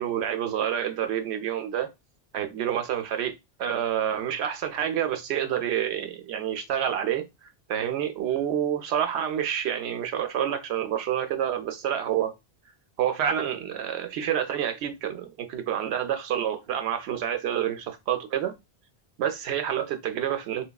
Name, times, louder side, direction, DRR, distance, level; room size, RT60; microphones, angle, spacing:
voice 1, 0.0-1.9 2.3-7.2 7.7-12.3 13.0-18.5 19.2-20.7, right 9 dB, 85° right, 0.8 m, -28 dB
3.2 x 2.2 x 2.2 m
omnidirectional pair, 1.1 m